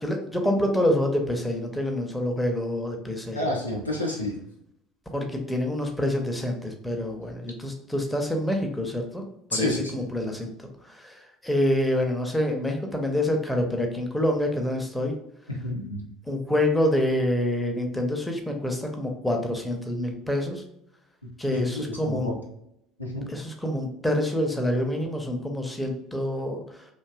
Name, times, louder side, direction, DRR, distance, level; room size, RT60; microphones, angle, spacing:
voice 1, 0.0-3.5 5.1-9.2 9.5-15.1 16.3-20.6 21.4-22.3 23.3-26.9, left 1 dB, 5° left, 2 dB, 0.5 m, -27 dB
voice 2, 3.3-4.3 9.5-9.9 15.6-16.0 21.5-22.4 23.0-23.3, left 1 dB, 85° left, -1 dB, 0.4 m, -29 dB
2.6 x 2.2 x 2.4 m, 0.78 s
figure-of-eight pair, 60°, 0 cm